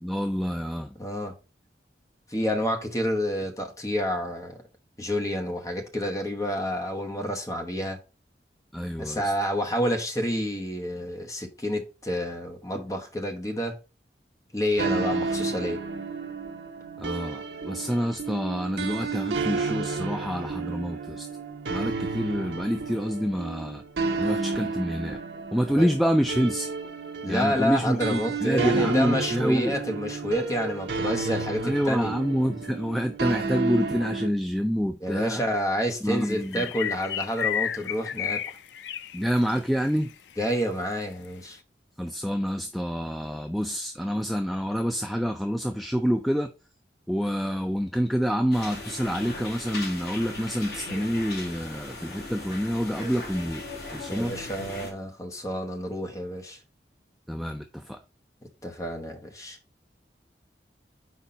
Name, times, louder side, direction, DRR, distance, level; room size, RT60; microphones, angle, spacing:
voice 1, 0.0-0.9 8.7-9.3 17.0-21.3 21.7-23.8 24.2-25.2 25.5-26.7 27.3-29.8 31.6-35.4 36.0-36.7 39.1-40.1 42.0-46.5 47.1-53.6 53.9-54.3 57.3-58.0, equal, ahead, 0.3 m, -27 dB
voice 2, 1.0-1.3 2.3-4.6 5.0-8.0 9.0-13.8 14.5-15.8 25.8-25.9 27.2-32.2 35.0-38.4 40.4-41.6 54.1-56.6 58.6-59.6, equal, 20° left, 1.0 m, -29 dB
sound 1, 14.8-34.3, right 4 dB, 75° right, 0.8 m, -31 dB
Birds Singing at Dawn, 36.2-39.6 39.9-40.0 40.4-40.5, left 9 dB, 80° left, 0.4 m, -31 dB
sound 2, 48.5-54.9, left 2 dB, 60° left, 2.0 m, -38 dB
4.6 x 4.2 x 5.0 m
head